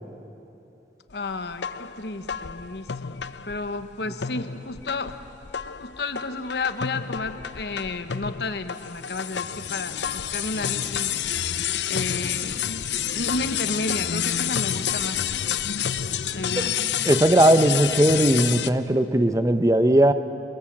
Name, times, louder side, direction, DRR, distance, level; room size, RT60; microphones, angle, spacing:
voice 1, 1.1-5.2 5.8-11.1 11.9-12.6 13.1-15.3 16.3-16.8, left 3 dB, 70° left, 9 dB, 1.0 m, -32 dB
sound 1, 1.5-3.9 4.2-18.7, left 9 dB, 85° left, 0.6 m, -29 dB
voice 2, 17.1-20.1, right 1 dB, 20° right, 10 dB, 0.7 m, -18 dB
27.5 x 22.0 x 7.4 m, 3.0 s
head